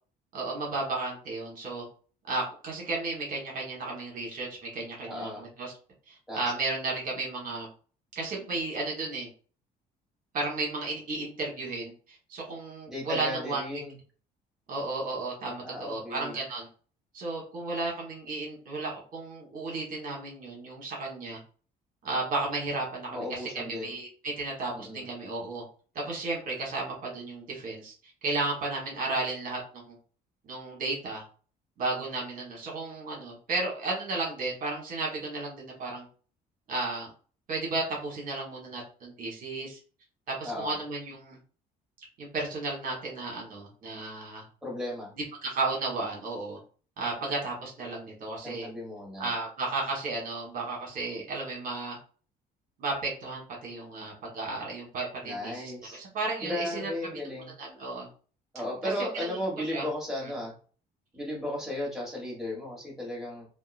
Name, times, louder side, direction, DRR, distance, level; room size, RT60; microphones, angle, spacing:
voice 1, 0.3-1.8 2.3-5.7 6.1-7.7 8.1-9.3 10.3-13.8 14.7-16.7 17.1-21.4 22.0-25.6 25.9-27.9 28.2-30.0 30.4-31.2 31.8-36.0 36.7-37.1 37.5-39.8 40.3-41.4 42.2-44.4 45.4-46.6 47.0-48.7 49.2-52.0 52.8-56.9 57.6-58.1 58.8-59.8 60.2-60.3, right 3 dB, 55° right, -2 dB, 1.2 m, -33 dB
voice 2, 5.0-5.4 6.3-6.4 12.9-13.9 15.6-16.4 23.1-23.9 24.7-25.1 40.4-40.8 44.6-45.1 48.4-49.3 55.2-56.0 56.4-57.5 58.5-60.5 61.1-63.5, left 1 dB, 5° right, -4 dB, 1.5 m, -35 dB
2.7 x 2.2 x 2.4 m, 0.40 s
cardioid pair, 110°, 17 cm